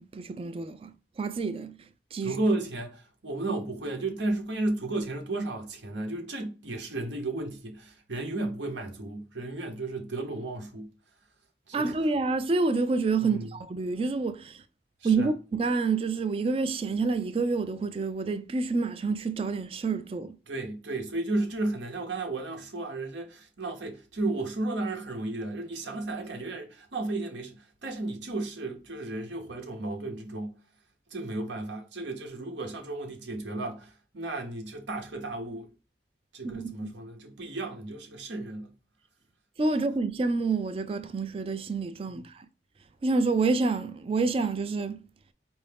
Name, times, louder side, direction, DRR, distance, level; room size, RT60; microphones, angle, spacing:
voice 1, 0.0-1.8 2.1-2.4 11.7-14.6 15.0-20.4 36.4-36.9 39.6-42.5 43.0-45.0, right 3 dB, 30° right, 0.3 m, -28 dB
voice 2, 2.2-10.9 11.7-11.9 13.2-13.5 15.0-15.3 20.5-30.5 31.1-35.7 36.3-38.7 42.1-42.2, right 2 dB, 85° right, 0.9 m, -33 dB
4.6 x 2.6 x 3.4 m
head